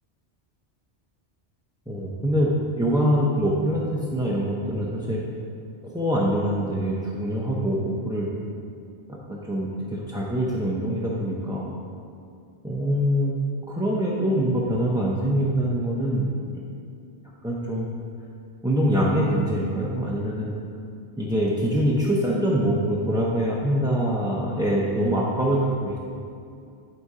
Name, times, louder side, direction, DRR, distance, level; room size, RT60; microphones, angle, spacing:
voice 1, 1.9-2.5 2.8-5.2 5.8-8.3 9.1-11.6 12.6-13.4 13.7-16.6 17.4-17.9 18.6-20.5 21.2-26.0, equal, 5° right, -6 dB, 0.5 m, -24 dB
11.0 x 4.1 x 4.8 m, 2.4 s
omnidirectional pair, 1.2 m